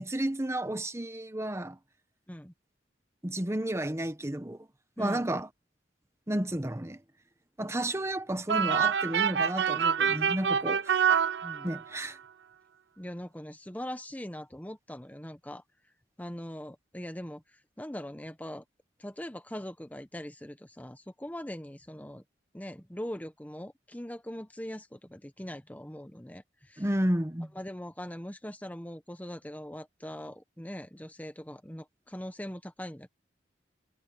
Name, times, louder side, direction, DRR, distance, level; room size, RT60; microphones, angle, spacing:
voice 1, 0.0-1.8 3.2-4.7 5.0-5.5 6.3-7.0 7.6-11.0 11.6-12.2 26.8-27.5, right 1 dB, 15° right, 1.1 m, -32 dB
sound 1, 8.5-12.0, right 7 dB, 70° right, 0.5 m, -26 dB
voice 2, 11.4-11.7 13.0-15.6 16.2-18.6 19.0-22.2 22.5-26.8 27.5-33.1, equal, 10° left, 1.0 m, -41 dB
head